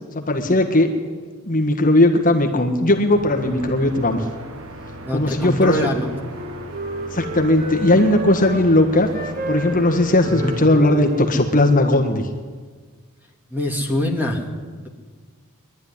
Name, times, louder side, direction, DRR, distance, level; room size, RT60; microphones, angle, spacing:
voice 1, 0.1-0.9 1.4-4.3 5.1-5.9 7.1-9.1 9.5-12.3, left 1 dB, 40° left, 4 dB, 1.5 m, -17 dB
sound 1, 3.1-10.7, right 2 dB, 70° right, 1.6 m, -37 dB
voice 2, 5.0-6.1 10.3-10.5 13.5-14.4, equal, 10° right, 1 dB, 2.4 m, -23 dB
Wind instrument woodwind instrument, 5.5-8.6 9.1-12.3, right 1 dB, 45° right, 2.0 m, -33 dB
21.5 x 12.0 x 10.0 m, 1.5 s
head